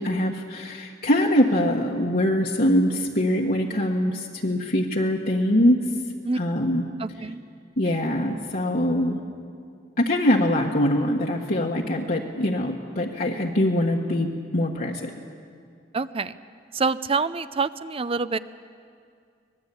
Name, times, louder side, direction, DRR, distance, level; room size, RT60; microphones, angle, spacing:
voice 1, 0.0-5.8 6.4-6.8 7.8-9.2 10.0-15.1, left 1 dB, 50° left, -2 dB, 1.4 m, -23 dB
voice 2, 7.0-7.4 15.9-16.4 16.7-18.4, right 4 dB, 30° right, 14 dB, 0.6 m, -26 dB
24.5 x 20.0 x 8.5 m, 2.3 s
head